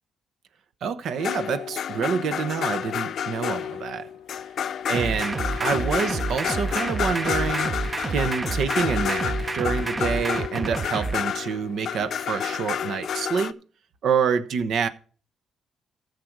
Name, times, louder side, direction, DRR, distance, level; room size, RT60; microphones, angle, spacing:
voice 1, 0.8-4.1 4.9-7.7 8.1-13.6 14.0-14.9, right 6 dB, 70° right, 1.0 m, -27 dB
sound 1, 1.2-13.5, left 9 dB, 65° left, 0.6 m, -30 dB
sound 2, 4.9-11.1, right 3 dB, 30° right, 0.7 m, -29 dB
14.0 x 6.7 x 4.7 m
cardioid pair, 90°, 0 cm